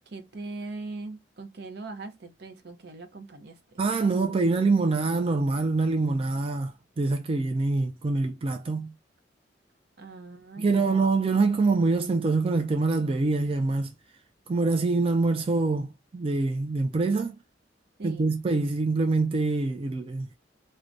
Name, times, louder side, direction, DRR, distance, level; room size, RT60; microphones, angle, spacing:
voice 1, 0.1-3.8 10.0-11.0 18.0-18.3, right 3 dB, 60° right, 0.7 m, -40 dB
voice 2, 3.8-8.9 10.6-13.9 14.5-17.4 18.0-20.3, right 3 dB, 30° right, 0.3 m, -25 dB
4.6 x 2.1 x 2.6 m
head